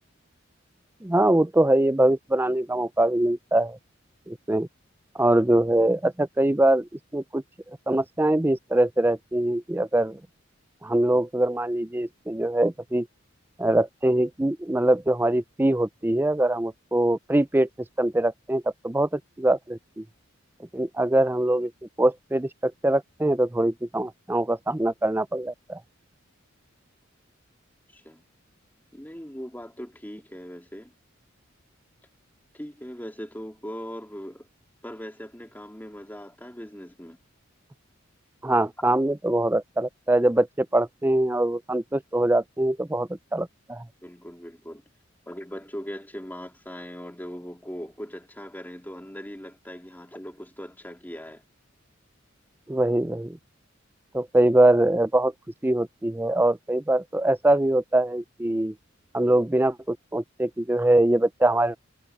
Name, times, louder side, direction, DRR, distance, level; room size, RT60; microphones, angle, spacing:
voice 1, 1.0-3.8 4.3-4.7 5.2-7.4 7.9-10.2 10.8-13.1 13.6-17.7 18.0-20.0 20.7-21.7 22.0-25.8 38.4-43.8 52.7-53.4 54.1-55.3 55.6-58.7 59.1-61.8, right 1 dB, 10° right, 0.5 m, -23 dB
voice 2, 27.9-28.2 28.9-30.9 32.5-34.5 34.8-37.2 44.0-44.8 45.3-51.4, equal, 10° left, 2.5 m, -40 dB
head